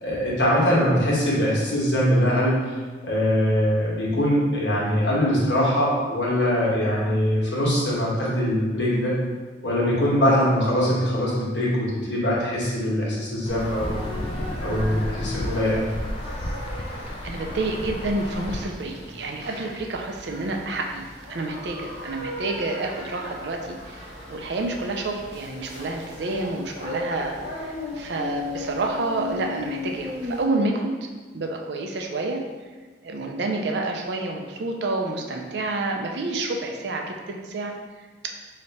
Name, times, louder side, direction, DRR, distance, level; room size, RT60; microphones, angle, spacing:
voice 1, 0.0-2.5 3.0-9.1 9.6-14.0 14.6-15.9, equal, 70° left, -6 dB, 1.3 m, -22 dB
Insect / Thunder / Rain, 13.4-18.7, left 1 dB, 30° left, 0.4 m, -32 dB
sound 1, 13.5-30.5, left 2 dB, 35° right, 1.2 m, -37 dB
voice 2, 16.9-21.0 21.3-31.1 31.3-32.4 33.0-37.7 38.0-38.3, right 2 dB, 65° right, 2 dB, 0.5 m, -29 dB
3.2 x 2.8 x 4.2 m, 1.3 s
head